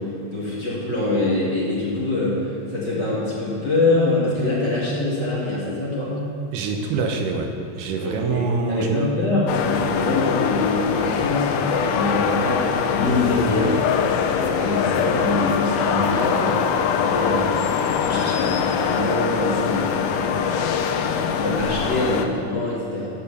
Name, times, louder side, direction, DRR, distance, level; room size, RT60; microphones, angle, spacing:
voice 1, 0.0-6.2 8.0-13.9 14.2-23.1, left 2 dB, 35° left, -7 dB, 2.3 m, -24 dB
voice 2, 6.5-7.5 7.8-9.1, right 4 dB, 80° right, 2 dB, 2.4 m, -24 dB
sound 1, 9.5-22.3, left 7 dB, 80° left, 2.0 m, -23 dB
13.5 x 5.1 x 6.7 m, 2.8 s
omnidirectional pair, 3.7 m